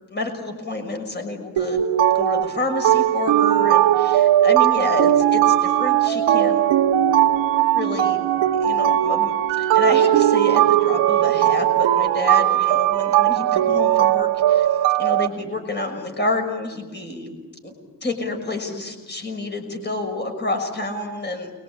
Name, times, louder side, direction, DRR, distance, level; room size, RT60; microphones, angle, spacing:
voice 1, 0.1-1.8 2.1-6.6 7.7-8.2 8.6-14.7 15.0-17.3 17.6-17.7 18.0-21.5, left 2 dB, 25° left, 5 dB, 6.1 m, -28 dB
sound 1, 1.6-15.3, right 12 dB, 80° right, 1.3 m, -18 dB
29.5 x 22.5 x 8.9 m, 1.2 s
cardioid pair, 140°, 44 cm